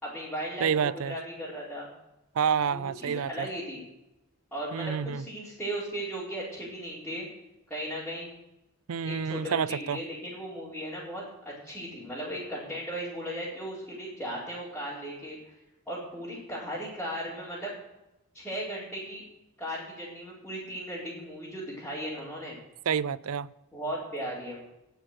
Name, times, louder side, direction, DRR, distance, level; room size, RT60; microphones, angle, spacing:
voice 1, 0.0-1.9 2.7-3.8 4.5-7.3 7.7-8.3 9.0-15.5 15.9-17.7 18.3-19.2 19.6-22.6 23.7-24.6, equal, 5° left, -11 dB, 4.5 m, -37 dB
voice 2, 0.6-1.2 2.4-3.5 4.7-5.2 8.9-10.0 22.9-23.5, right 7 dB, 75° right, 18 dB, 0.5 m, -28 dB
18.0 x 6.5 x 6.5 m, 0.92 s
head